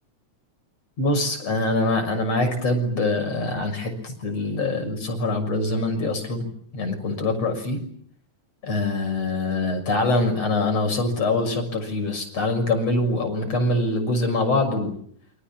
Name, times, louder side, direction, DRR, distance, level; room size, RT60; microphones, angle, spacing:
voice 1, 1.0-6.5 6.7-7.8 8.6-15.0, left 2 dB, 55° left, 5 dB, 7.5 m, -24 dB
28.5 x 25.5 x 7.5 m, 0.64 s
omnidirectional pair, 3.4 m